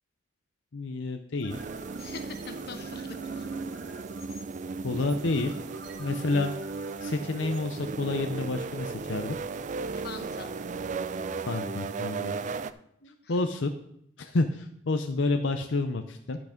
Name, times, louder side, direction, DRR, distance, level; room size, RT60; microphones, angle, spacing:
voice 1, 0.7-1.6 4.8-5.5 6.0-6.5 7.0-9.4 11.5-12.3 13.3-13.7 14.2-16.4, left 3 dB, 80° left, 6 dB, 0.6 m, -29 dB
sound 1, 1.2-8.3, right 2 dB, 60° right, 1.5 m, -49 dB
sound 2, 1.5-12.7, right 4 dB, 40° right, 0.3 m, -36 dB
voice 2, 2.0-3.5 9.9-10.5 13.0-13.4, left 4 dB, 55° left, 7 dB, 1.0 m, -43 dB
11.0 x 6.0 x 5.1 m, 0.73 s
head